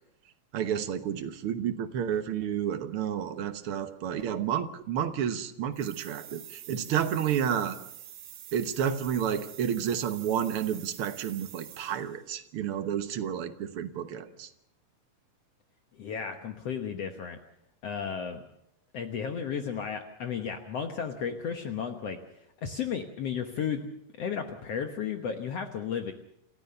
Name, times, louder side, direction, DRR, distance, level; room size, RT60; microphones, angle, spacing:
voice 1, 0.5-7.8 8.5-14.5, right 9 dB, 60° right, 9 dB, 1.5 m, -30 dB
sound 1, 5.7-12.2, right 11 dB, 90° right, 3.1 m, -46 dB
voice 2, 16.0-17.4 17.8-18.4 18.9-22.2 22.6-23.8 24.2-26.1, left 7 dB, 60° left, 6 dB, 1.9 m, -33 dB
28.0 x 14.5 x 6.8 m, 0.78 s
omnidirectional pair, 3.8 m